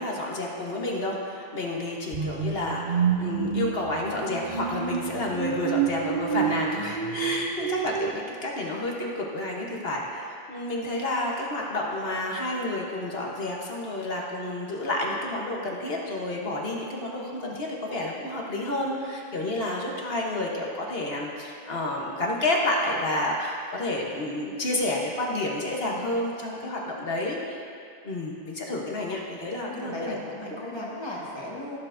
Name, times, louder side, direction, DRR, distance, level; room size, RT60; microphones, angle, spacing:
voice 1, 0.0-27.7 28.0-30.2, left 1 dB, 50° left, -2 dB, 1.3 m, -30 dB
sound 1, 2.1-8.1, right 8 dB, 65° right, 0.4 m, -29 dB
voice 2, 29.6-31.8, left 1 dB, 20° left, -5 dB, 1.5 m, -36 dB
15.5 x 7.2 x 2.6 m, 2.3 s
omnidirectional pair, 1.3 m